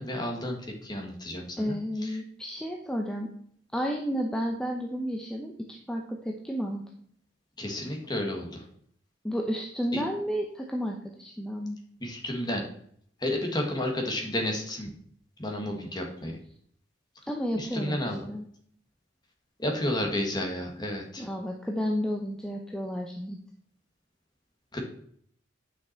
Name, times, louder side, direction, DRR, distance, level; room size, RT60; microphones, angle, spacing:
voice 1, 0.0-1.8 2.0-2.2 7.6-8.7 9.9-10.0 12.0-12.7 13.2-14.9 15.4-16.3 17.6-18.2 19.6-21.3 24.7-24.8, left 1 dB, 20° left, 1 dB, 1.8 m, -31 dB
voice 2, 1.6-3.3 3.7-6.8 9.2-11.8 17.3-18.4 21.2-23.4, equal, 5° left, 0 dB, 0.8 m, -32 dB
9.5 x 6.0 x 4.5 m, 0.64 s
head